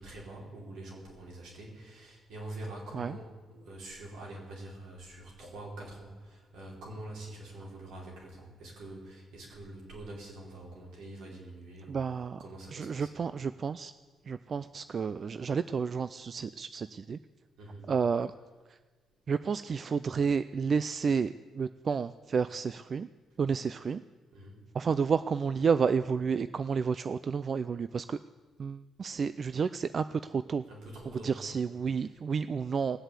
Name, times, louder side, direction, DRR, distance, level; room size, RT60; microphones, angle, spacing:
voice 1, 0.0-12.1 12.4-13.2 17.6-17.9 24.3-24.7 30.7-31.6 32.0-32.1, right 1 dB, 85° right, -3 dB, 4.5 m, -45 dB
voice 2, 11.9-12.4 12.7-13.9 14.3-17.2 17.9-18.3 19.3-23.1 23.4-24.0 24.7-28.2 28.6-30.6 31.2-33.0, right 6 dB, 45° right, 13 dB, 0.4 m, -30 dB
18.5 x 7.9 x 8.2 m, 1.3 s
cardioid pair, 90°, 0 cm